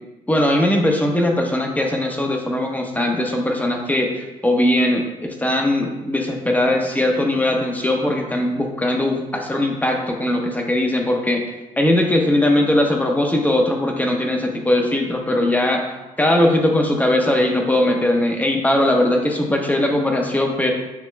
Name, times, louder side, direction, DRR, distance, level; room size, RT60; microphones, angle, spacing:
voice 1, 0.3-11.4 11.8-15.9 16.2-20.7, left 1 dB, 10° left, 2 dB, 0.9 m, -20 dB
8.2 x 2.9 x 2.2 m, 1.0 s
supercardioid pair, 60°, 15 cm